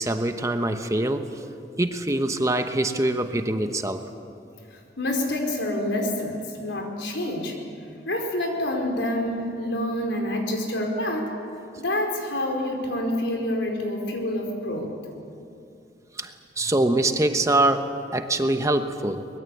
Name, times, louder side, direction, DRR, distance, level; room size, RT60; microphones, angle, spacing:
voice 1, 0.0-1.4 1.8-4.1 11.7-11.8 16.1-19.3, right 1 dB, 20° right, 7 dB, 1.1 m, -24 dB
voice 2, 4.7-7.5 8.0-11.3 11.8-14.9, left 1 dB, 90° left, 1 dB, 4.8 m, -27 dB
23.5 x 21.5 x 8.4 m, 2.6 s
head